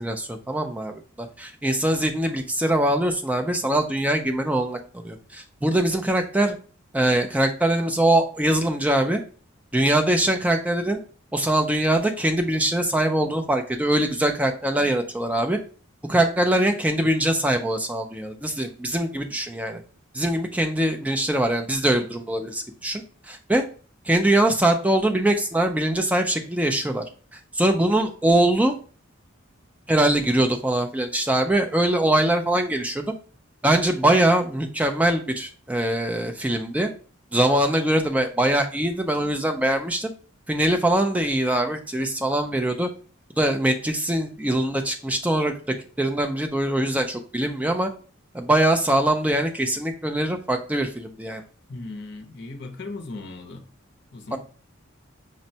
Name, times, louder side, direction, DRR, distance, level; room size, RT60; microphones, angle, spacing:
voice 1, 0.0-6.6 6.9-9.2 9.7-11.0 11.3-15.6 16.1-19.8 20.1-23.6 24.1-27.0 27.5-28.7 29.9-33.0 33.6-36.9 37.3-40.1 40.5-42.9 43.4-45.5 46.0-47.9 48.3-51.4 54.3-54.4, right 1 dB, 5° right, 0.3 m, -22 dB
voice 2, 51.7-53.6 54.1-54.4, left 2 dB, 55° left, 0.6 m, -37 dB
5.1 x 2.1 x 2.7 m
head